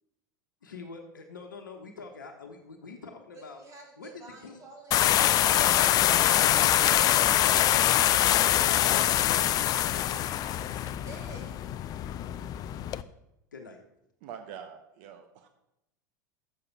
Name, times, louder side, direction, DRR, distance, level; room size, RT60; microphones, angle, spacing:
voice 1, 0.6-3.6 4.0-4.6 6.3-7.1 8.3-10.4 13.5-13.8, left 4 dB, 80° left, 3 dB, 1.0 m, -45 dB
voice 2, 3.3-7.2 10.3-11.5, right 2 dB, 35° right, 0 dB, 3.0 m, -49 dB
sound 1, 4.9-13.0, left 12 dB, 40° left, 0.4 m, -24 dB
voice 3, 14.2-15.5, right 8 dB, 55° right, 7 dB, 0.8 m, -44 dB
7.1 x 6.8 x 5.8 m, 0.84 s
figure-of-eight pair, 80°, 10 cm